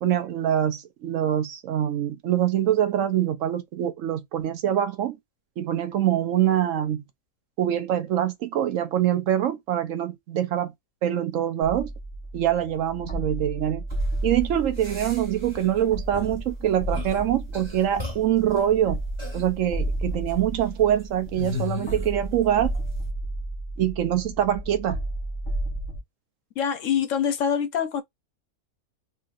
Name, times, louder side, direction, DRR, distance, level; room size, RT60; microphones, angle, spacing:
voice 1, 0.0-5.2 5.6-7.0 7.6-10.7 11.0-11.9 12.3-13.8 14.2-19.0 19.3-22.7 23.8-25.0, right 11 dB, 70° right, 0.9 m, -24 dB
sound 1, 11.6-26.0, right 1 dB, 25° left, 1.1 m, -32 dB
sound 2, 13.9-14.1 14.8-15.8 16.1-16.4 16.9-17.3 17.5-18.5 19.2-19.5 20.1-20.5 21.4-22.4 22.7-22.8, left 3 dB, 20° right, 1.2 m, -36 dB
voice 2, 26.6-28.0, left 8 dB, 70° left, 1.0 m, -25 dB
3.3 x 2.9 x 2.4 m
omnidirectional pair, 1.4 m